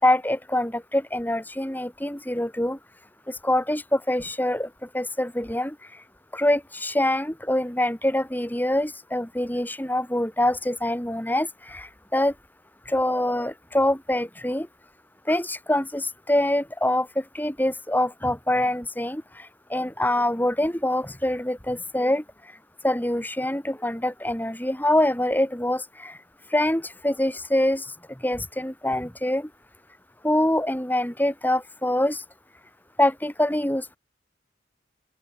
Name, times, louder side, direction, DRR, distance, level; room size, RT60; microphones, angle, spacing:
voice 1, 0.0-2.8 3.3-5.8 6.3-12.3 12.9-14.7 15.3-22.2 22.8-26.2 26.5-29.5 30.2-32.2 33.0-34.0, left 1 dB, 10° left, 3.1 m, -25 dB
open air
head